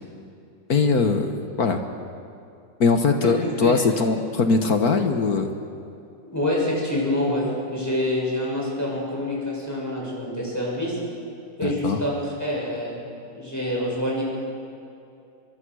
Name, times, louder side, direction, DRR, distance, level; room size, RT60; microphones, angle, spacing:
voice 1, 0.7-1.8 2.8-5.5 11.6-12.0, left 4 dB, 55° left, 6 dB, 1.7 m, -21 dB
voice 2, 6.3-11.0 11.6-13.0 13.3-14.2, left 1 dB, 10° left, -4 dB, 6.7 m, -26 dB
24.5 x 23.0 x 6.3 m, 2.6 s
omnidirectional pair, 2.1 m